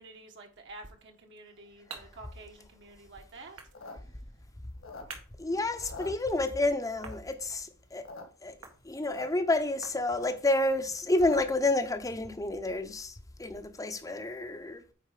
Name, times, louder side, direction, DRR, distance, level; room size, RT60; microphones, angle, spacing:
voice 1, 0.0-3.6, right 2 dB, 55° right, 1.4 m, -49 dB
sound 1, 1.2-12.0, right 5 dB, 85° right, 1.8 m, -54 dB
sound 2, 3.6-5.4 5.7-6.6 7.0-7.4 7.8-8.2 8.5-8.6 8.7-9.3 9.6-11.6, left 2 dB, 65° left, 1.6 m, -45 dB
voice 2, 5.4-8.1 8.4-8.6 8.8-14.8, left 2 dB, 15° left, 0.8 m, -29 dB
9.2 x 4.2 x 5.0 m
head